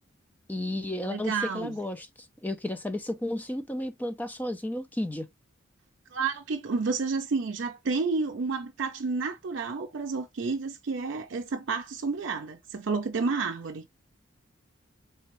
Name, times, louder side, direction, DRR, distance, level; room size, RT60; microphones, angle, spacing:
voice 1, 0.5-2.1 2.4-5.3, left 1 dB, 10° left, 0.3 m, -32 dB
voice 2, 1.0-1.8 6.1-13.9, right 4 dB, 65° right, 0.5 m, -30 dB
3.5 x 3.3 x 2.9 m
head